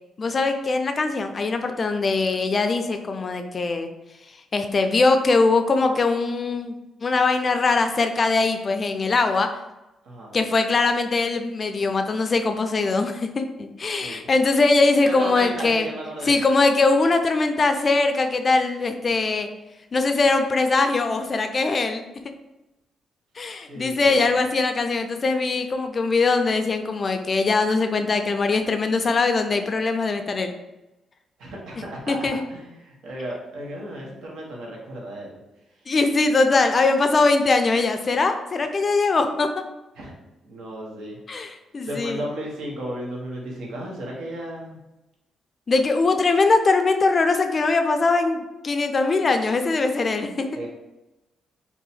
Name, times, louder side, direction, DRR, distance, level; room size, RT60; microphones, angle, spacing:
voice 1, 0.2-3.9 4.5-6.7 7.0-9.5 10.3-15.9 16.2-19.5 19.9-22.0 23.4-30.5 32.1-32.4 35.9-39.5 41.3-42.2 45.7-50.5, left 3 dB, 35° left, 6 dB, 0.3 m, -21 dB
voice 2, 10.0-10.3 14.0-14.3 15.0-16.4 23.7-24.2 31.4-35.4 39.9-40.1 40.4-41.2 41.8-44.8 50.5-50.7, right 1 dB, 85° right, -2 dB, 1.0 m, -34 dB
2.7 x 2.3 x 4.1 m, 0.98 s
cardioid pair, 125°, 0 cm